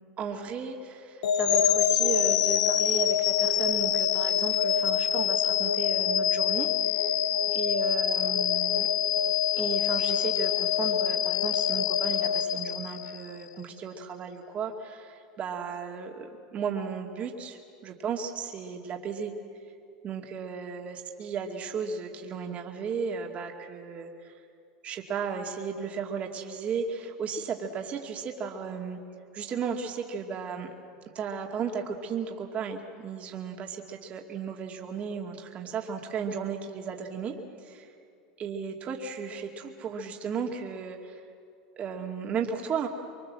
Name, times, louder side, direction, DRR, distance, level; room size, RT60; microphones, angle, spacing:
voice 1, 0.2-7.2 7.5-8.9 9.5-19.3 20.0-24.3 24.8-29.0 29.3-30.7 31.1-37.9 38.4-41.2 41.8-42.9, right 6 dB, 40° right, 2 dB, 2.4 m, -35 dB
sound 1, 1.2-13.3, left 9 dB, 80° left, 0.9 m, -25 dB
24.5 x 24.0 x 7.6 m, 2.4 s
hypercardioid pair, 100°, 4 cm